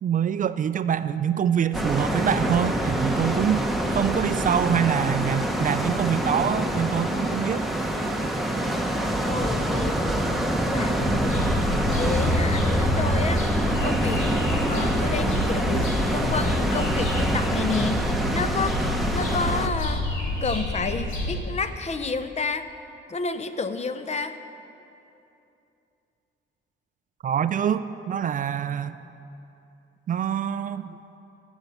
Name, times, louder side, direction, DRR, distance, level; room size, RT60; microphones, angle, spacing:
voice 1, 0.0-3.6 3.9-7.6 27.2-29.0 30.1-31.0, right 8 dB, 40° right, 13 dB, 0.4 m, -25 dB
sound 1, 1.7-19.7, right 1 dB, ahead, 0.9 m, -26 dB
voice 2, 9.3-10.0 10.6-11.0 12.0-13.4 13.8-14.2 14.7-18.8 19.1-20.0 20.4-22.7 23.1-24.4, left 4 dB, 35° left, 10 dB, 0.6 m, -30 dB
sound 2, 11.0-21.4, left 1 dB, 85° left, 2.2 m, -28 dB
14.0 x 7.2 x 5.7 m, 2.8 s
cardioid pair, 90°, 20 cm